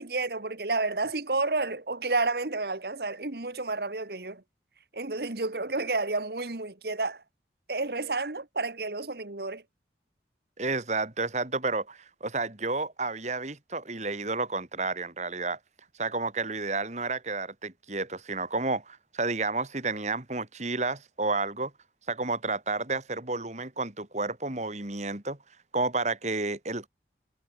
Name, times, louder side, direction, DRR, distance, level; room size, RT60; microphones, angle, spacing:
voice 1, 0.0-4.4 4.9-7.2 7.7-9.6, right 3 dB, 60° right, 1.6 m, -30 dB
voice 2, 10.6-15.6 16.0-21.7 22.1-25.4 25.7-26.9, right 3 dB, 40° right, 2.6 m, -31 dB
head